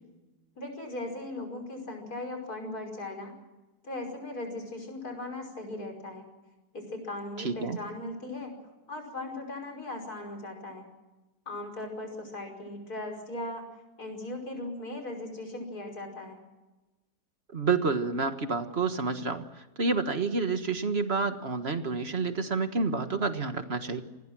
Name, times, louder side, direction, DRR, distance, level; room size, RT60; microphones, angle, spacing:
voice 1, 0.6-3.3 3.8-6.3 6.7-8.5 8.9-10.9 11.5-13.6 14.0-16.4, left 2 dB, 70° left, 3 dB, 6.0 m, -38 dB
voice 2, 7.4-7.8 17.5-24.0, right 4 dB, 40° right, 8 dB, 1.7 m, -29 dB
28.0 x 20.5 x 6.2 m, 1.1 s
omnidirectional pair, 1.7 m